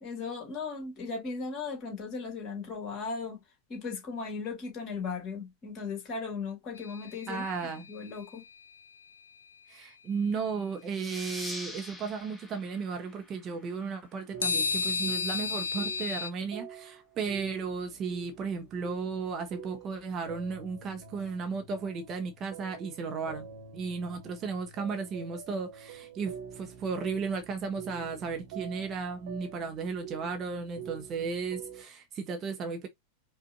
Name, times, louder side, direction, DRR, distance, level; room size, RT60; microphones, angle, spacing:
voice 1, 0.0-3.4 3.7-7.5 7.9-8.4, left 4 dB, 30° left, 2.0 m, -37 dB
sound 1, 6.8-8.0 14.4-16.3, left 5 dB, 70° left, 0.4 m, -32 dB
voice 2, 7.3-7.9 9.7-23.5 23.7-32.9, right 5 dB, 30° right, 0.8 m, -35 dB
sound 2, 10.9-14.1, left 1 dB, 5° left, 0.9 m, -44 dB
sound 3, 14.3-16.2 16.5-31.8, right 7 dB, 50° right, 1.1 m, -47 dB
5.1 x 2.5 x 2.6 m
figure-of-eight pair, 90°, 0 cm